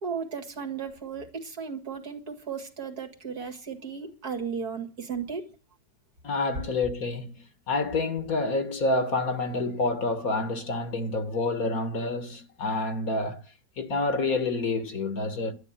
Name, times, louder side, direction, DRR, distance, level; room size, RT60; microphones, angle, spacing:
voice 1, 0.0-5.4, right 6 dB, 60° right, 2.7 m, -35 dB
voice 2, 6.2-13.4 13.8-15.5, left 3 dB, 55° left, 2.0 m, -28 dB
12.5 x 9.6 x 8.9 m
omnidirectional pair, 1.9 m